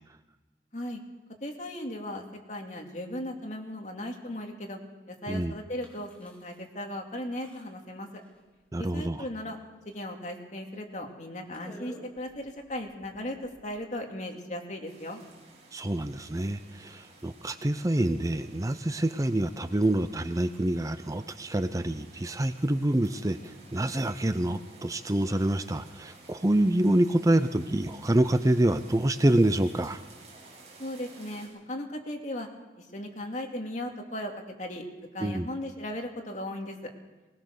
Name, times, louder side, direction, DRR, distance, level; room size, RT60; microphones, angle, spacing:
voice 1, 1.4-4.8 5.1-8.2 8.8-9.6 9.8-15.2 30.8-32.5 32.8-34.9 35.1-36.9, left 1 dB, 45° left, 2 dB, 2.7 m, -37 dB
sound 1, 5.8-6.6 7.0-7.1 7.4-7.9 8.2-8.7 9.0-9.5 9.9-10.0 10.3-10.4 10.9-11.1 11.5-13.9, right 1 dB, 10° left, 4.4 m, -52 dB
voice 2, 8.7-9.2 15.7-30.0 35.2-35.5, right 1 dB, 20° right, 11 dB, 0.6 m, -26 dB
sound 2, 14.8-31.5, right 2 dB, 35° right, 7.8 m, -53 dB
20.0 x 20.0 x 6.6 m, 1.2 s
head